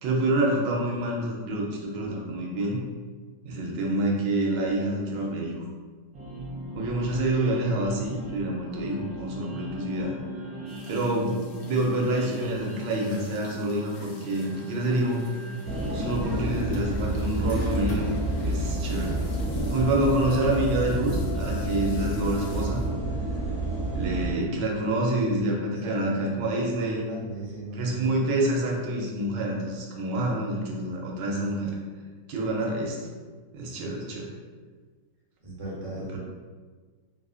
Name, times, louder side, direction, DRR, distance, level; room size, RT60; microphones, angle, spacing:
voice 1, 0.0-2.8 3.4-5.5 6.7-10.2 10.9-15.2 15.9-18.1 18.4-19.2 19.7-22.8 23.9-27.0 27.8-31.7 32.3-33.0 33.5-34.3, right 1 dB, 90° right, -1 dB, 1.3 m, -27 dB
sound 1, 6.1-23.3, equal, 70° right, 1.1 m, -41 dB
sound 2, 10.7-22.9, left 3 dB, 70° left, 0.9 m, -50 dB
sound 3, 15.6-24.3, right 1 dB, 50° left, 1.1 m, -29 dB
voice 2, 25.7-28.1 33.7-34.0 35.4-36.2, right 1 dB, 35° right, -7 dB, 0.6 m, -38 dB
3.2 x 2.4 x 2.3 m, 1.5 s
omnidirectional pair, 1.8 m